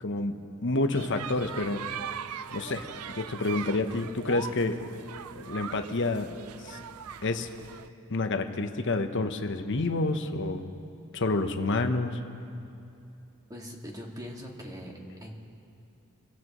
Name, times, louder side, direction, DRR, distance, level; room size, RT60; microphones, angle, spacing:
voice 1, 0.0-1.9 2.5-4.8 5.4-6.3 6.6-6.8 7.2-7.5 8.1-10.6 11.1-12.2, left 2 dB, 55° left, 7 dB, 0.9 m, -29 dB
sound 1, 0.9-7.9, right 8 dB, 85° right, 0.5 m, -40 dB
voice 2, 13.5-15.3, equal, 15° right, -1 dB, 2.0 m, -41 dB
27.5 x 16.0 x 3.1 m, 2.8 s
head